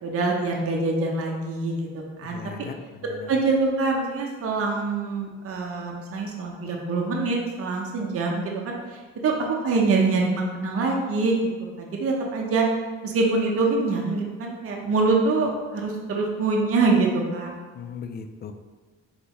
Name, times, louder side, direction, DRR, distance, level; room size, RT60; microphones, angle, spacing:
voice 1, 0.0-2.4 3.3-11.5 11.8-12.7 13.0-17.5, right 3 dB, 50° right, -1 dB, 0.7 m, -25 dB
voice 2, 2.2-3.3 17.7-18.5, left 6 dB, 35° left, 7 dB, 0.4 m, -38 dB
4.0 x 3.6 x 3.0 m, 1.4 s
cardioid pair, 90°, 30 cm